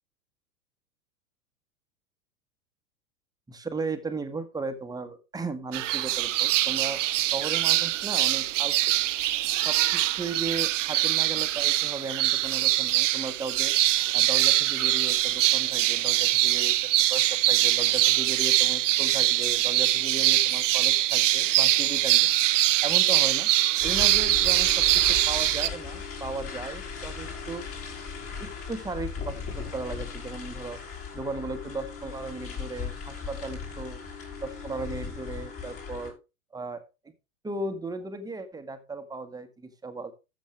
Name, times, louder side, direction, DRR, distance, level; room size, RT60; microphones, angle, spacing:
voice 1, 3.5-8.7 9.6-13.7 14.1-16.7 17.1-22.3 22.8-23.5 23.8-24.7 25.1-27.6 28.4-30.8 31.1-34.0 34.4-36.2 36.5-36.8 37.4-40.1, right 3 dB, 10° right, 8 dB, 1.6 m, -36 dB
sound 1, 5.7-25.7, right 15 dB, 55° right, 0.8 m, -23 dB
sound 2, 23.8-36.1, left 6 dB, 30° left, 6.3 m, -37 dB
13.5 x 7.5 x 3.4 m, 0.28 s
figure-of-eight pair, 95°, 43 cm